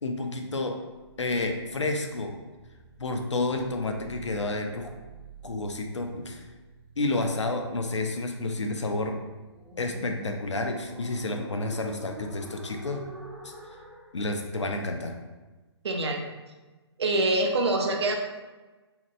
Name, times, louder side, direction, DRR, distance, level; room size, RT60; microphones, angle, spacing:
voice 1, 0.0-0.8 1.2-2.3 3.0-4.9 5.4-6.4 7.0-9.1 9.8-13.0 13.4-13.5 14.1-15.2, left 2 dB, 90° left, 3 dB, 0.4 m, -30 dB
sound 1, 1.0-14.1, right 1 dB, 10° right, 0.3 m, -48 dB
voice 2, 15.8-16.2 17.0-18.2, right 2 dB, 65° right, 2 dB, 0.5 m, -25 dB
2.8 x 2.1 x 2.4 m, 1.2 s
figure-of-eight pair, 135°, 15 cm